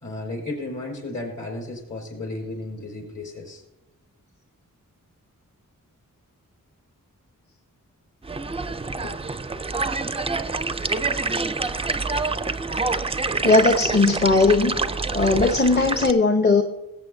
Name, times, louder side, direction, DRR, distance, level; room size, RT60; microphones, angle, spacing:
voice 1, 0.0-3.6 8.6-8.7 9.0-9.3 10.0-10.1, left 2 dB, 60° left, -1 dB, 4.8 m, -34 dB
sound 1, 8.2-16.1, right 3 dB, 20° right, 0.4 m, -27 dB
voice 2, 13.4-14.7 15.1-16.6, left 3 dB, 30° left, 4 dB, 0.9 m, -18 dB
20.5 x 8.3 x 2.7 m, 0.93 s
wide cardioid pair, 120°, 34 cm